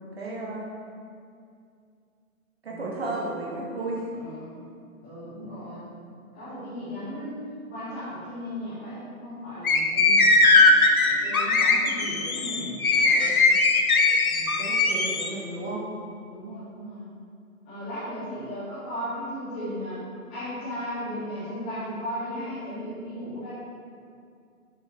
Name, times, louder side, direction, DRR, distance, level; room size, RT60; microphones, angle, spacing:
voice 1, 0.2-0.7 2.6-4.1 13.2-13.3 14.5-15.9, right 2 dB, 45° right, -4 dB, 2.1 m, -33 dB
voice 2, 4.1-4.6 5.0-5.8 6.3-13.2 14.2-14.6 16.3-17.1 17.6-20.0 20.3-23.5, equal, 5° left, -18 dB, 0.9 m, -36 dB
sound 1, 9.6-15.3, left 3 dB, 75° left, 1.2 m, -20 dB
8.1 x 5.5 x 6.1 m, 2.3 s
hypercardioid pair, 175°, 44 cm